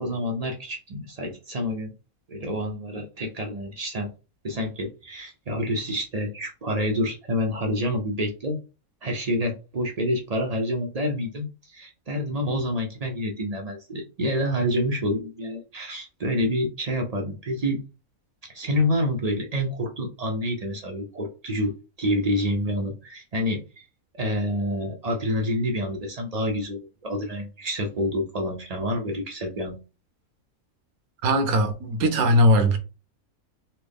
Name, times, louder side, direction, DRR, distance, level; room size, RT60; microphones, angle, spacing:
voice 1, 0.0-1.9 2.3-4.1 4.4-8.6 9.0-17.8 18.4-21.7 22.0-23.8 24.1-29.7, equal, 45° right, 0.5 m, -28 dB
voice 2, 31.2-32.8, equal, 75° right, 1.2 m, -19 dB
4.2 x 2.0 x 3.4 m
omnidirectional pair, 1.5 m